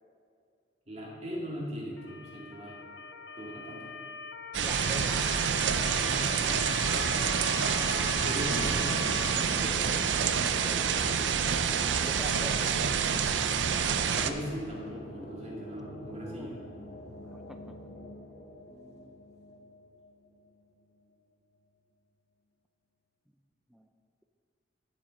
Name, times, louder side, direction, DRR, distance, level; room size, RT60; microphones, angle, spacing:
voice 1, 0.9-2.8 3.4-3.9 6.4-7.3 8.2-9.0 10.8-11.2 14.0-16.6, equal, 35° right, -4 dB, 2.3 m, -39 dB
Motor vehicle (road) / Siren, 2.0-9.4, left 6 dB, 80° left, 0.6 m, -41 dB
sound 1, 4.5-14.3, right 7 dB, 85° right, 0.5 m, -28 dB
voice 2, 4.6-5.3 9.6-10.1 10.4-10.9 11.3-12.7 16.1-16.6 17.3-17.7 18.7-19.2 19.5-19.7 23.7-23.9, equal, ahead, 5 dB, 0.4 m, -46 dB
sound 2, 7.5-20.9, left 1 dB, 60° left, 1.0 m, -44 dB
10.0 x 7.4 x 5.3 m, 2.4 s
head